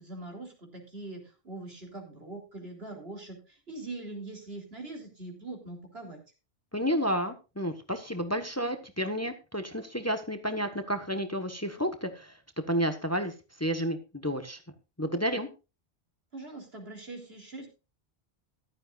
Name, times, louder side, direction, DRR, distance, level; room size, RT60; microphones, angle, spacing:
voice 1, 0.0-6.2 16.3-17.7, right 2 dB, 65° right, 2 dB, 3.9 m, -42 dB
voice 2, 6.7-12.3 12.7-13.3 13.6-14.6 15.0-15.5, equal, 15° left, 8 dB, 1.2 m, -31 dB
15.0 x 12.0 x 2.5 m, 0.30 s
omnidirectional pair, 1.1 m